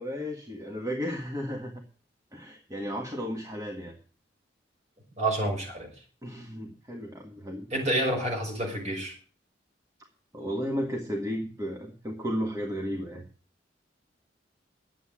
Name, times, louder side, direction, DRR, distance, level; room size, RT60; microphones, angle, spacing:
voice 1, 0.0-1.8 2.3-4.0 6.2-7.7 10.3-13.2, equal, 20° right, 2 dB, 1.6 m, -34 dB
voice 2, 5.2-5.9 7.7-9.1, right 1 dB, 40° right, 0 dB, 5.7 m, -28 dB
10.0 x 8.5 x 8.6 m, 0.39 s
head